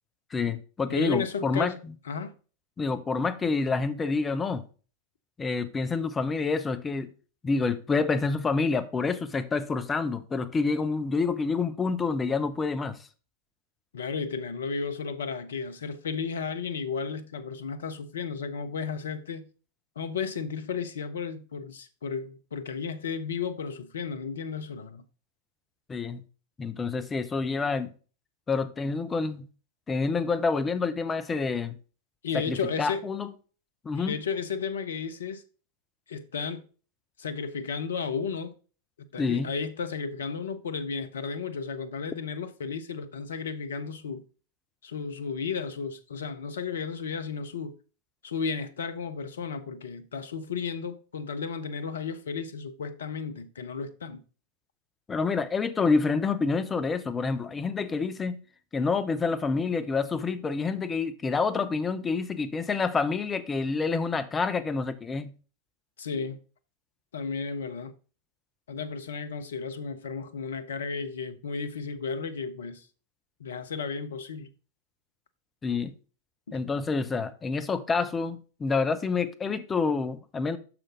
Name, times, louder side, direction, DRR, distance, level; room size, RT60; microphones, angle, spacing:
voice 1, 0.3-1.7 2.8-4.6 5.4-7.1 7.4-13.0 25.9-26.2 26.6-27.9 28.5-29.5 29.9-31.8 32.3-33.3 33.8-34.1 39.2-39.5 55.1-58.4 58.7-65.3 75.6-75.9 76.5-80.6, left 4 dB, 15° left, 0.7 m, -28 dB
voice 2, 0.9-1.8 2.1-2.3 13.9-19.5 20.0-25.0 32.2-33.1 34.0-35.4 36.1-36.7 37.2-38.5 39.1-44.2 44.8-47.7 48.2-54.2 66.0-66.4 67.1-67.9 68.7-72.9 73.4-74.5 76.5-76.6, left 5 dB, 65° left, 0.7 m, -33 dB
6.5 x 6.0 x 3.8 m
figure-of-eight pair, 90°, 0 cm